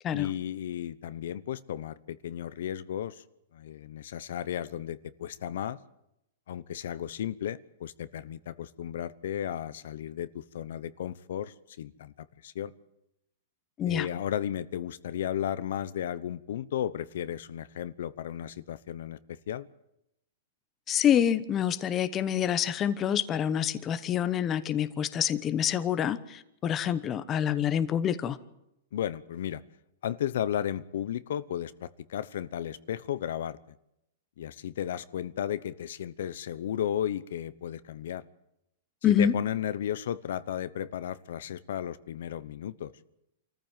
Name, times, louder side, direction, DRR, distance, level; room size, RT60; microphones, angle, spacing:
voice 1, 0.1-3.2 3.5-5.8 6.5-12.7 13.8-19.7 28.9-29.6 30.0-33.6 34.4-38.2 39.0-42.9, left 10 dB, 70° left, 15 dB, 0.9 m, -34 dB
voice 2, 20.9-28.4 39.0-39.3, left 9 dB, 20° left, 12 dB, 1.0 m, -27 dB
25.5 x 14.5 x 9.1 m, 0.83 s
hypercardioid pair, 160°, 0 cm